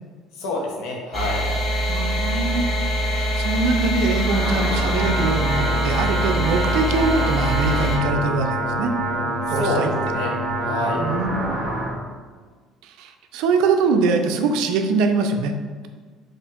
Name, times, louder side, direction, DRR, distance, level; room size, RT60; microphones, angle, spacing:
voice 1, 0.4-1.4 9.5-10.3 10.6-11.0, left 2 dB, 85° left, -1 dB, 0.7 m, -27 dB
sound 1, 1.1-8.0, equal, 5° left, 0.7 m, -24 dB
voice 2, 1.9-2.6 3.2-8.9 9.5-9.9 11.0-11.5 12.8-15.5, right 4 dB, 80° right, 6 dB, 0.3 m, -23 dB
sound 2, 4.0-11.9, right 1 dB, 35° right, 0.6 m, -26 dB
4.3 x 2.5 x 2.5 m, 1.5 s
cardioid pair, 130°, 0 cm